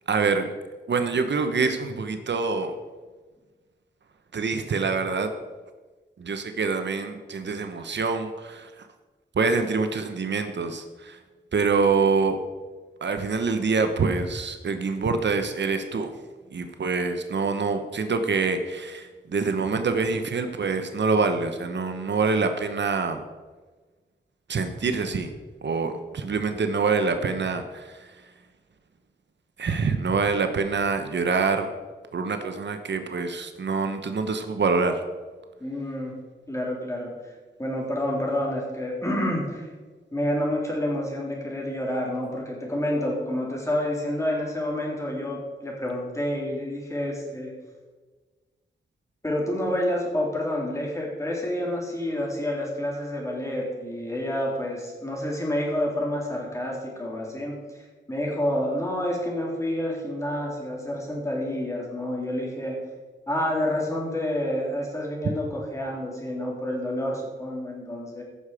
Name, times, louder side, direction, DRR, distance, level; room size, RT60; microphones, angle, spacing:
voice 1, 0.1-0.5 0.9-2.7 4.3-5.3 6.2-8.9 9.4-11.2 11.5-12.4 13.0-16.1 16.5-23.2 24.5-25.3 25.6-28.1 29.6-31.7 32.1-35.0, right 4 dB, 70° right, 7 dB, 1.0 m, -25 dB
voice 2, 35.6-36.1 36.5-37.3 37.6-39.7 40.1-47.5 49.2-57.8 58.1-62.8 63.3-68.2, left 1 dB, 15° left, -3 dB, 3.7 m, -28 dB
15.5 x 6.8 x 4.9 m, 1.3 s
wide cardioid pair, 90°, 19 cm